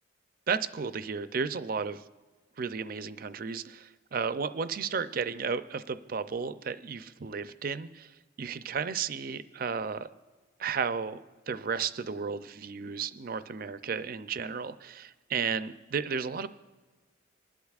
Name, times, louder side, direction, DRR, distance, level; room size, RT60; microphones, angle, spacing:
voice 1, 0.5-2.0 2.6-8.1 8.4-10.1 10.6-11.2 11.5-16.5, right 6 dB, 45° right, 12 dB, 0.4 m, -33 dB
26.5 x 11.5 x 2.4 m, 1.3 s
head